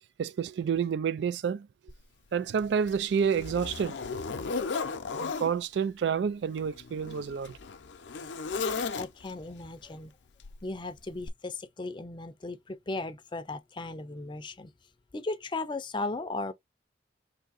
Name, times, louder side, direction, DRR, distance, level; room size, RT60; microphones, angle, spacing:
voice 1, 0.2-1.7 2.3-4.0 5.2-7.6, right 7 dB, 70° right, 0.3 m, -29 dB
Zipper (clothing), 1.9-2.0 2.6-5.5 6.5-9.4 10.4-10.7 11.2-11.3, left 4 dB, 75° left, 0.6 m, -35 dB
voice 2, 9.0-10.1 10.6-14.7 15.1-16.5, left 2 dB, 25° left, 0.5 m, -36 dB
3.6 x 2.7 x 4.0 m
head